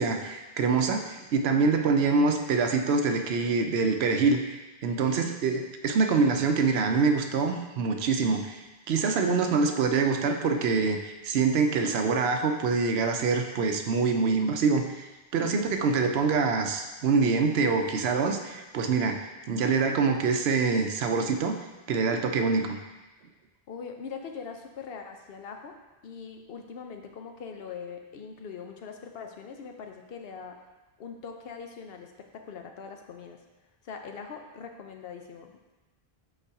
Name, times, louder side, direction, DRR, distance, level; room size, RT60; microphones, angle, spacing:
voice 1, 0.0-21.5 21.9-22.8, right 4 dB, 85° right, 5 dB, 0.9 m, -25 dB
voice 2, 1.5-1.8 15.4-15.7 23.7-25.8 26.0-30.7 31.0-33.4 33.8-35.6, left 6 dB, 70° left, 4 dB, 0.9 m, -42 dB
5.5 x 4.1 x 4.8 m, 1.1 s
omnidirectional pair, 1.0 m